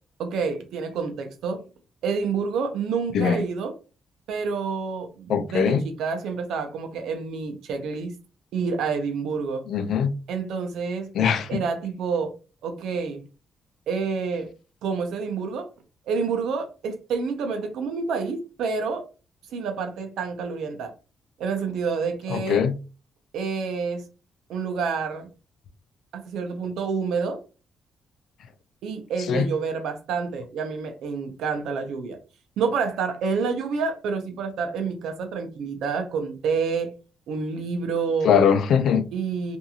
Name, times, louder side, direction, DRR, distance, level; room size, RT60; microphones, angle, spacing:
voice 1, 0.2-1.6 2.0-3.7 4.3-8.1 8.5-9.6 10.3-11.1 11.5-12.3 12.6-13.2 13.9-14.5 14.8-15.7 16.1-19.0 19.5-20.9 21.4-22.6 23.3-24.0 24.5-25.3 26.1-27.4 28.8-32.2 32.6-36.9 37.3-38.3 39.1-39.6, right 5 dB, 90° right, 0.6 m, -28 dB
voice 2, 5.3-5.8 9.7-10.1 11.1-11.6 22.3-22.8 29.3-29.5 38.2-39.1, left 7 dB, 60° left, 0.3 m, -21 dB
2.8 x 2.6 x 2.3 m
cardioid pair, 180°, 0 cm